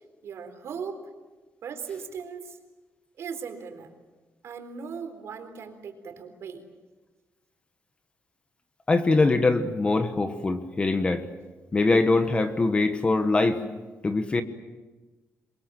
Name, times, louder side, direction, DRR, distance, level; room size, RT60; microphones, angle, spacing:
voice 1, 0.2-1.1 1.6-2.6 3.2-3.9 4.4-6.6, right 6 dB, 60° right, 6 dB, 3.9 m, -38 dB
voice 2, 8.9-11.3 11.7-13.6 14.0-14.4, left 3 dB, 20° left, 9 dB, 1.3 m, -23 dB
28.0 x 23.0 x 7.5 m, 1.3 s
wide cardioid pair, 170°, 5 cm